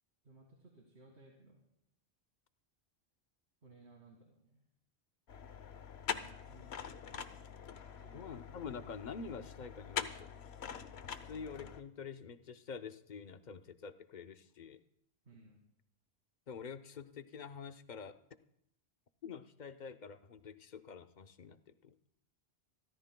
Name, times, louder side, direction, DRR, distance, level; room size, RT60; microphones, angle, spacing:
voice 1, 0.2-1.6 3.6-4.6 6.1-7.5 7.8-8.3 15.3-15.6, right 2 dB, 85° right, 0 dB, 2.2 m, -61 dB
sound 1, 5.3-11.8, left 7 dB, 80° left, 1.0 m, -44 dB
voice 2, 8.1-10.3 11.2-14.8 16.5-18.2 19.2-21.9, left 6 dB, 50° left, 9 dB, 0.8 m, -47 dB
27.0 x 14.0 x 2.2 m, 0.76 s
omnidirectional pair, 1.1 m